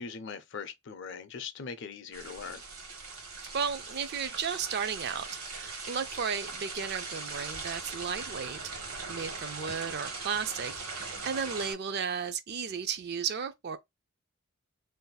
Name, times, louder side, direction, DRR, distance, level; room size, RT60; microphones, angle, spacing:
voice 1, 0.0-2.6, left 5 dB, 55° left, 0.5 m, -41 dB
sound 1, 2.1-11.7, right 4 dB, 80° right, 1.2 m, -40 dB
voice 2, 3.5-8.8 9.1-13.8, right 6 dB, 50° right, 0.4 m, -34 dB
2.6 x 2.0 x 3.9 m
head